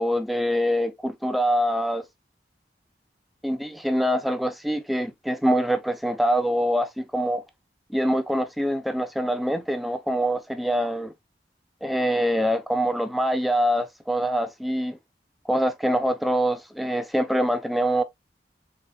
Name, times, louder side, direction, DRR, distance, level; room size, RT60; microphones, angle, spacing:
voice 1, 0.0-2.0 3.4-7.4 7.9-11.1 11.8-15.0 15.5-18.0, equal, ahead, 0.3 m, -24 dB
4.1 x 3.1 x 2.2 m
head